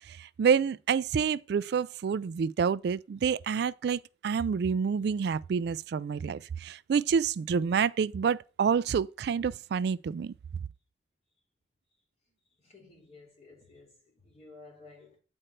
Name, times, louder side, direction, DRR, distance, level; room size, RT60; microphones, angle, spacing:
voice 1, 0.1-10.3, right 6 dB, 60° right, 0.3 m, -28 dB
voice 2, 12.6-15.2, left 3 dB, 35° left, 3.3 m, -54 dB
8.9 x 4.4 x 6.5 m
head